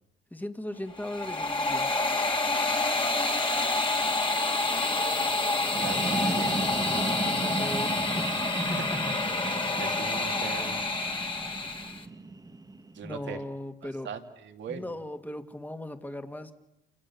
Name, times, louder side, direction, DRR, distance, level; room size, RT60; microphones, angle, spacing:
voice 1, 0.3-1.9 7.4-8.8 13.0-14.1 14.7-16.5, left 1 dB, 10° left, 7 dB, 2.2 m, -38 dB
sound 1, 0.9-12.0, left 2 dB, 25° left, 2.6 m, -28 dB
sound 2, 5.6-13.2, right 3 dB, 20° right, 1.6 m, -35 dB
voice 2, 5.8-6.6 8.6-8.8 9.7-10.9 12.9-13.4 14.0-14.9, right 7 dB, 65° right, 5 dB, 2.7 m, -41 dB
28.5 x 28.5 x 7.1 m, 0.88 s
cardioid pair, 90°, 20 cm